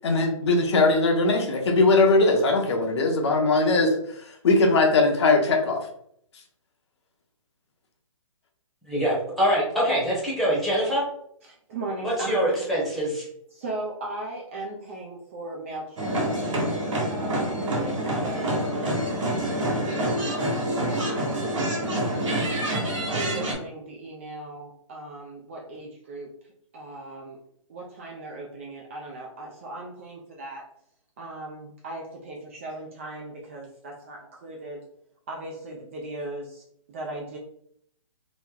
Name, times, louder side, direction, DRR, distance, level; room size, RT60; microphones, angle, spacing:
voice 1, 0.0-5.8, left 3 dB, 55° left, 3 dB, 0.7 m, -20 dB
voice 2, 8.9-11.0 12.0-13.3, equal, ahead, -7 dB, 0.9 m, -24 dB
voice 3, 11.4-12.7 13.5-16.2 16.5-22.1 23.1-26.3 26.7-27.4 27.7-30.6 31.2-34.8 35.3-36.6 36.9-37.4, right 2 dB, 25° right, -1 dB, 0.3 m, -38 dB
sound 1, 16.0-23.5, right 1 dB, 60° right, 1.3 m, -27 dB
3.0 x 2.0 x 3.7 m, 0.70 s
hypercardioid pair, 155°, 18 cm